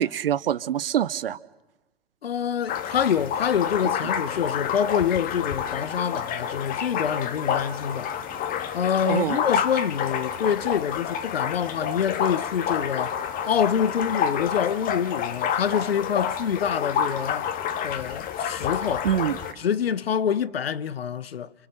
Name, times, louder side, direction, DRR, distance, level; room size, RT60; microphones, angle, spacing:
voice 1, 0.0-1.4 9.0-9.4 19.0-19.4, right 10 dB, 65° right, 1.1 m, -25 dB
voice 2, 2.2-8.1 8.7-13.2 13.5-17.5 17.8-19.1 19.6-21.5, left 8 dB, 70° left, 1.1 m, -26 dB
sound 1, 2.7-19.5, left 8 dB, 30° left, 1.8 m, -29 dB
29.5 x 26.0 x 6.8 m
figure-of-eight pair, 105°, 31 cm